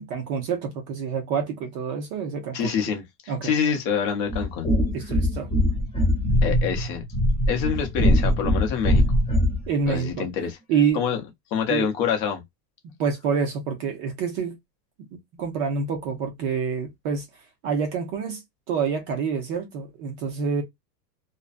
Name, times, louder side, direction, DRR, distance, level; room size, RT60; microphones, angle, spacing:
voice 1, 0.0-2.7 3.3-3.5 4.9-5.5 9.7-10.3 10.7-11.0 11.7-11.9 12.8-14.6 15.3-17.3 17.6-18.4 18.7-20.6, right 6 dB, 35° right, 0.5 m, -27 dB
voice 2, 2.5-4.7 6.4-7.0 7.5-9.0 9.9-10.6 10.9-11.2 11.5-12.4, left 7 dB, 40° left, 0.7 m, -26 dB
sound 1, 4.3-9.7, left 1 dB, 10° left, 1.2 m, -22 dB
2.5 x 2.1 x 2.4 m
supercardioid pair, 150°, 50 cm